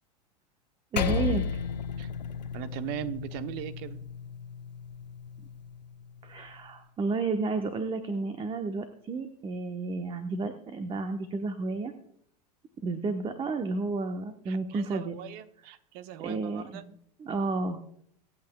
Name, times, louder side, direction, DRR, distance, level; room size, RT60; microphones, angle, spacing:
voice 1, 0.9-1.6 6.2-11.9 12.8-15.2 16.2-16.9 17.2-17.8, right 3 dB, 25° right, 7 dB, 1.1 m, -31 dB
Percussion, 1.0-5.7, left 6 dB, 85° left, 1.0 m, -33 dB
voice 2, 2.5-4.0 14.5-16.8, right 11 dB, 50° right, 12 dB, 0.9 m, -39 dB
24.5 x 8.5 x 2.3 m, 0.67 s
hypercardioid pair, 90°, 21 cm